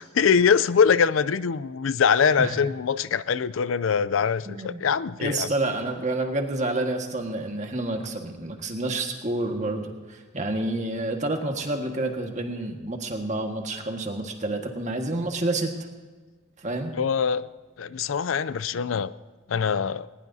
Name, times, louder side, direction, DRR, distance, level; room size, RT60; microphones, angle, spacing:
voice 1, 0.0-5.5 17.0-17.5 17.8-19.1 19.5-20.1, left 6 dB, 80° left, 16 dB, 0.5 m, -23 dB
voice 2, 4.5-4.8 5.2-15.7 16.6-16.9, right 2 dB, 35° right, 3 dB, 1.6 m, -29 dB
20.0 x 19.5 x 2.8 m, 1.4 s
head